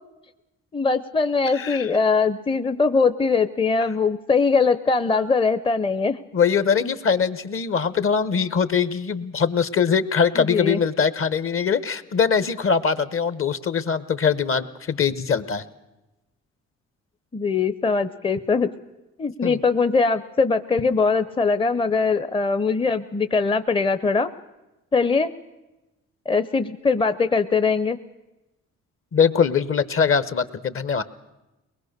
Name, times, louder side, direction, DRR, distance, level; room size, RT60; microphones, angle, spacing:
voice 1, 0.7-6.2 6.8-7.0 10.4-10.8 17.3-18.7 19.2-24.3 24.9-25.3 26.3-28.0, left 4 dB, 15° left, 11 dB, 0.7 m, -21 dB
voice 2, 1.5-1.9 6.3-15.6 19.4-19.6 29.1-31.0, left 6 dB, 45° left, 14 dB, 1.0 m, -22 dB
22.5 x 20.5 x 6.7 m, 1.0 s
cardioid pair, 90°, 30 cm